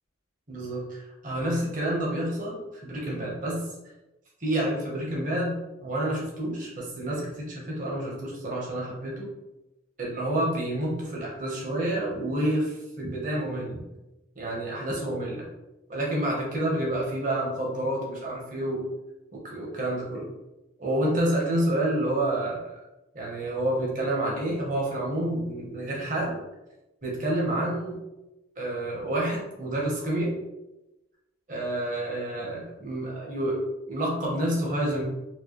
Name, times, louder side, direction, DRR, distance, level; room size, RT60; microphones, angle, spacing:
voice 1, 0.5-3.6 4.4-9.3 10.0-13.8 14.4-15.4 15.9-18.8 19.4-20.3 20.8-22.7 23.1-26.4 27.0-28.0 28.6-30.3 31.5-33.6 33.9-35.0, right 1 dB, 40° right, -3 dB, 1.0 m, -29 dB
4.5 x 2.2 x 3.0 m, 0.99 s
head